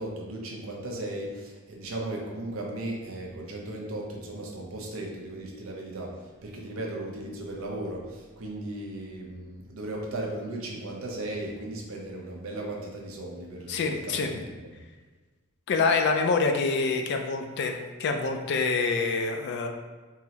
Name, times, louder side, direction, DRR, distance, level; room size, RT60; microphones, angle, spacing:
voice 1, 0.0-14.7, right 1 dB, 65° right, -1 dB, 0.6 m, -36 dB
voice 2, 13.7-14.4 15.7-19.7, left 4 dB, 50° left, 5 dB, 0.3 m, -26 dB
3.7 x 2.1 x 2.8 m, 1.3 s
head